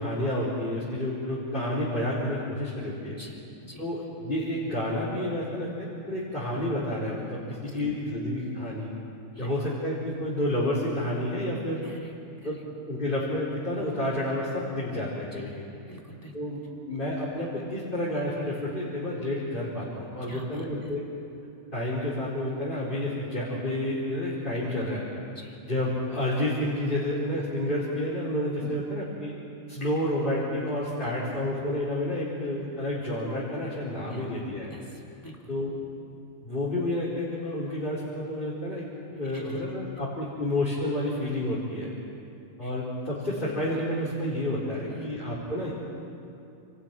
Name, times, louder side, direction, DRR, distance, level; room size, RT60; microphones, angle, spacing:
voice 1, 0.0-3.2 3.8-8.9 9.4-11.8 12.4-12.6 12.9-15.7 16.3-16.6 16.9-21.0 21.7-25.1 25.7-29.3 29.7-34.7 35.5-35.7 36.4-38.8 39.1-41.9 42.6-45.7, left 1 dB, 35° left, -7 dB, 4.8 m, -30 dB
voice 2, 3.2-3.9 7.5-8.0 9.3-9.5 11.8-12.6 15.3-15.6 15.9-16.4 20.2-20.9 25.3-25.6 28.6-29.0 31.0-31.2 34.1-34.2 34.7-35.5 39.3-39.6 42.6-42.7 44.8-45.1, equal, 15° left, -1 dB, 3.5 m, -47 dB
30.0 x 28.5 x 6.1 m, 2.7 s
omnidirectional pair, 1.4 m